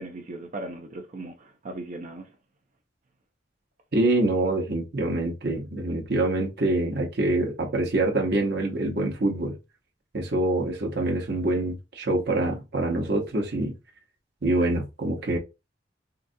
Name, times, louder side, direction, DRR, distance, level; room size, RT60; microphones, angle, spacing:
voice 1, 0.0-2.3, right 2 dB, 40° right, 0.5 m, -38 dB
voice 2, 3.9-9.6 10.1-13.7 14.4-15.4, right 2 dB, 60° right, 0.8 m, -25 dB
3.8 x 2.3 x 2.6 m
head